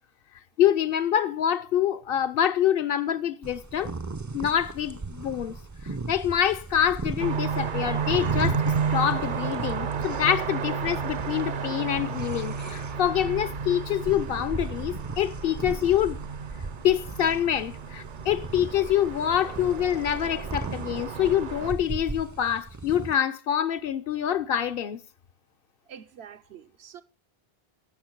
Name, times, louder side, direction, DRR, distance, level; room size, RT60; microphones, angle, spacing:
voice 1, 0.6-3.9 4.3-5.6 6.1-16.2 16.8-25.0, left 10 dB, 65° left, 0.8 m, -26 dB
sound 1, 3.4-23.1, right 3 dB, 25° right, 0.4 m, -37 dB
sound 2, 7.2-21.7, right 6 dB, 55° right, 0.7 m, -32 dB
voice 2, 25.9-27.0, right 8 dB, 85° right, 1.0 m, -46 dB
14.5 x 6.4 x 4.5 m
omnidirectional pair, 1.1 m